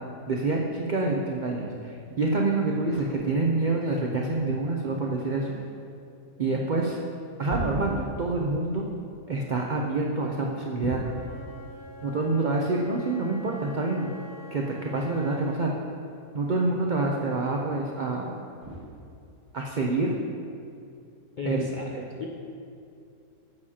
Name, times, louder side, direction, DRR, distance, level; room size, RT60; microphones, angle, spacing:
voice 1, 0.3-5.6 6.4-7.0 7.4-8.8 9.3-11.0 12.0-14.1 14.5-15.7 16.3-18.3 19.5-20.1 21.4-21.6, right 3 dB, 65° right, -1 dB, 0.4 m, -27 dB
sound 1, 1.7-19.7, right 1 dB, 15° right, 1.5 m, -45 dB
Wind instrument woodwind instrument, 10.9-15.7, left 2 dB, 15° left, 0.7 m, -46 dB
voice 2, 21.4-22.3, left 3 dB, 65° left, -1 dB, 0.4 m, -35 dB
9.6 x 8.0 x 2.8 m, 2.5 s
omnidirectional pair, 1.6 m